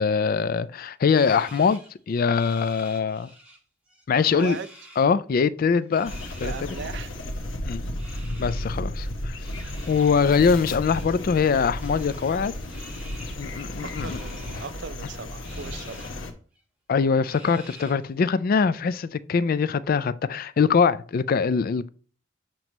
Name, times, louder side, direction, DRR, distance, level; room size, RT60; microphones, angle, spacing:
voice 1, 0.0-1.8 2.1-3.3 4.1-4.6 5.0-6.1 6.4-6.5 7.6-7.8 8.4-9.4 9.9-12.5 13.4-14.2 16.9-21.9, left 5 dB, 45° left, 0.3 m, -22 dB
sound 1, 1.1-3.6 3.9-5.1 5.8-7.2 7.9-8.7 9.4-11.3 11.7-13.4 14.0-14.7 15.4-16.1 16.5-16.6 17.3-18.1, right 1 dB, 5° right, 1.1 m, -49 dB
voice 2, 4.2-4.7 6.4-7.1 13.8-16.1, right 5 dB, 60° right, 0.4 m, -38 dB
sound 2, 6.1-16.3, left 1 dB, 80° left, 1.0 m, -33 dB
7.7 x 3.0 x 5.2 m
head